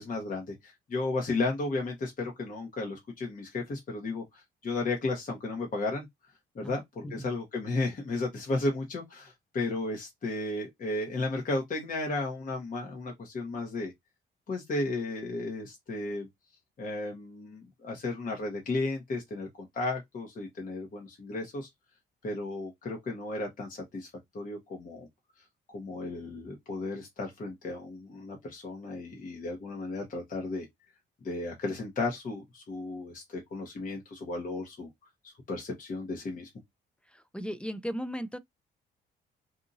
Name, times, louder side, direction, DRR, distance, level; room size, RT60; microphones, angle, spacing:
voice 1, 0.0-6.1 6.5-13.9 14.5-16.3 16.8-21.7 22.2-24.1 24.3-25.1 25.7-30.7 31.2-34.9 35.2-36.5, left 2 dB, 45° left, 1.0 m, -34 dB
voice 2, 37.1-38.4, equal, 5° left, 0.3 m, -36 dB
2.7 x 2.6 x 2.6 m
cardioid pair, 90°, 20 cm